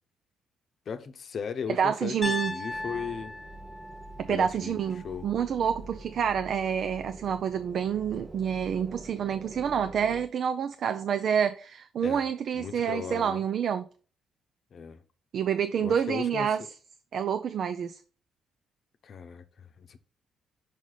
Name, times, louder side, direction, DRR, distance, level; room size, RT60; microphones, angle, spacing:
voice 1, 0.9-3.3 4.3-4.8 5.0-5.3 12.0-12.3 12.5-13.4 14.7-15.0 15.8-16.5 19.0-20.0, left 6 dB, 55° left, 0.8 m, -37 dB
voice 2, 1.7-2.5 4.2-13.9 15.3-16.6 17.1-18.0, right 8 dB, 60° right, 0.4 m, -28 dB
Piano, 2.2-6.3, left 2 dB, 20° left, 0.6 m, -38 dB
sound 1, 2.7-10.3, right 2 dB, 35° right, 0.8 m, -46 dB
5.3 x 4.9 x 3.9 m
cardioid pair, 75°, 0 cm